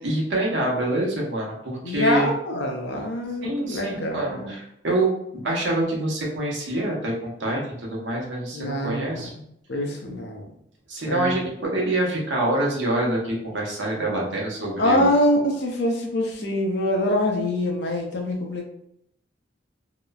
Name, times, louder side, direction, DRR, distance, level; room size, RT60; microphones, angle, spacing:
voice 1, 0.0-2.3 3.4-9.3 10.9-15.1, right 1 dB, 80° right, -2 dB, 0.8 m, -26 dB
voice 2, 1.8-4.5 8.5-10.4 11.1-11.4 14.8-18.7, left 1 dB, 65° left, 1 dB, 0.5 m, -24 dB
2.9 x 2.0 x 2.3 m, 0.73 s
head